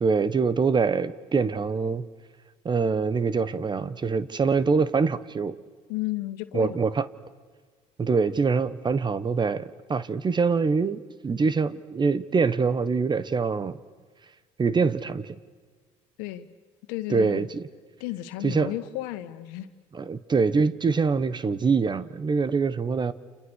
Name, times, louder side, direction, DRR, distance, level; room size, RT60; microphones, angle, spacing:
voice 1, 0.0-2.1 2.6-5.6 6.5-7.0 8.0-13.8 14.6-15.4 17.1-17.6 18.4-18.7 19.9-23.1, right 5 dB, 30° right, 16 dB, 1.3 m, -24 dB
voice 2, 5.9-6.8 16.2-16.5 16.9-17.5 18.0-19.7, left 15 dB, 80° left, 10 dB, 1.8 m, -33 dB
29.5 x 29.0 x 6.6 m, 1.5 s
supercardioid pair, 80°, 15 cm